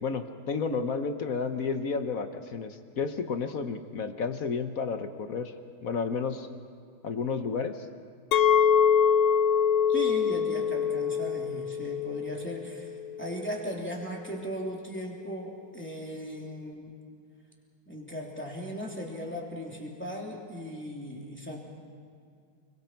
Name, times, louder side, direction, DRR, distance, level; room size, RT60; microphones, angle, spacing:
voice 1, 0.0-5.5 5.8-6.5 7.0-7.9, left 5 dB, 55° left, 8 dB, 1.1 m, -31 dB
Chink clink, 8.3-13.5, left 7 dB, 85° left, 1.5 m, -25 dB
voice 2, 9.9-16.9 17.9-21.6, equal, 5° left, -2 dB, 2.9 m, -37 dB
30.0 x 22.5 x 4.5 m, 2.2 s
omnidirectional pair, 2.3 m